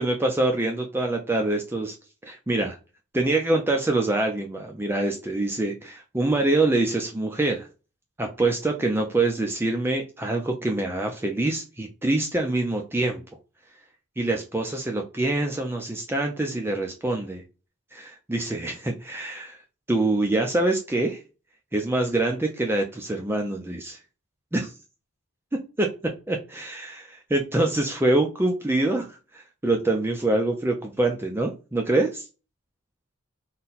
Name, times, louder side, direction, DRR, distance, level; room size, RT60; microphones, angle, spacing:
voice 1, 0.0-2.0 2.2-2.8 3.1-7.7 8.2-13.2 14.2-17.4 17.9-19.6 19.9-21.2 21.7-24.0 24.5-24.7 25.8-32.3, right 2 dB, 10° right, 2 dB, 0.4 m, -25 dB
4.1 x 2.2 x 3.9 m, 0.32 s
head